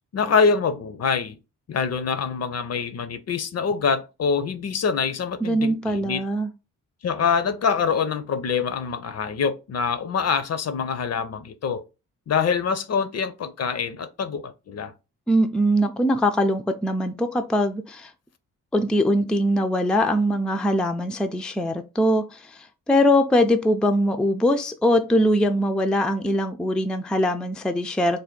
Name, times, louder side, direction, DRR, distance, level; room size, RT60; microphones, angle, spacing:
voice 1, 0.1-1.4 1.7-6.2 7.0-11.8 12.3-14.9, left 6 dB, 50° left, 0.6 m, -25 dB
voice 2, 5.4-6.5 15.3-18.1 18.7-22.5 22.9-28.2, equal, 5° left, 0.4 m, -22 dB
3.4 x 2.1 x 3.7 m
cardioid pair, 60°, 33 cm